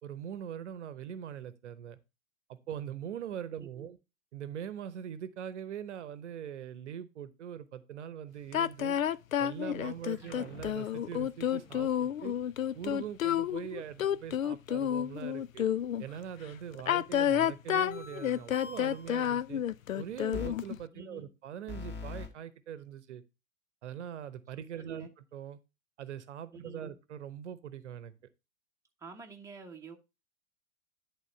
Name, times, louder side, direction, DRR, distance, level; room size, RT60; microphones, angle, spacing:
voice 1, 0.0-2.0 2.5-4.0 4.3-9.0 9.4-12.3 12.7-15.7 16.0-19.6 19.9-23.2 23.8-25.6 26.0-28.1, right 9 dB, 60° right, 0.9 m, -42 dB
voice 2, 3.6-3.9 10.1-10.4 20.9-21.2 24.7-25.1 26.5-27.0 29.0-30.0, right 4 dB, 5° right, 1.2 m, -48 dB
sound 1, 8.5-16.0 16.7-20.8, left 10 dB, 80° left, 0.5 m, -30 dB
sound 2, 10.1-11.8 17.9-19.1 20.3-20.5 21.7-22.3, left 3 dB, 25° left, 2.1 m, -44 dB
11.0 x 3.7 x 5.5 m
figure-of-eight pair, 100°, 40 cm